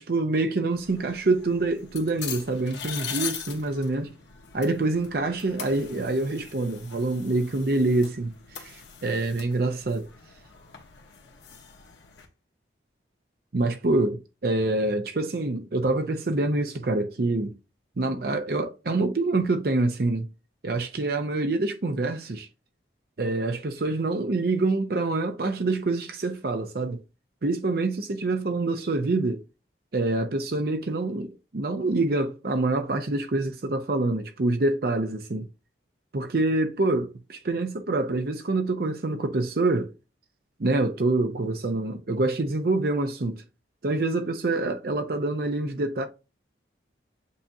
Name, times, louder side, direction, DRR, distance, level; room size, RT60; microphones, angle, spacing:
voice 1, 0.0-4.1 4.5-10.1 13.5-17.5 18.0-20.3 20.6-22.5 23.2-27.0 27.4-29.4 29.9-35.4 36.1-39.9 40.6-43.4 43.8-46.1, right 2 dB, 55° right, 0.6 m, -26 dB
sound 1, 0.7-12.3, left 8 dB, 75° left, 1.2 m, -41 dB
8.3 x 2.8 x 2.3 m
head